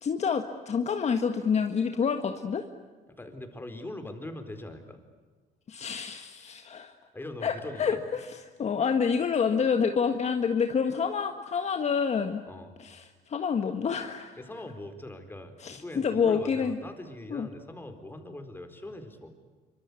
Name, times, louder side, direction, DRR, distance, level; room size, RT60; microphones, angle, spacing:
voice 1, 0.0-2.6 5.7-6.9 7.4-7.5 7.8-8.3 8.6-12.4 12.8-13.0 13.3-14.4 15.6-16.8 17.3-17.5, left 6 dB, 40° left, 6 dB, 1.7 m, -27 dB
voice 2, 3.2-5.0 7.1-8.0 12.5-12.7 14.3-19.3, left 1 dB, 10° left, 7 dB, 4.3 m, -41 dB
26.0 x 24.5 x 8.5 m, 1.4 s
cardioid pair, 110°, 17 cm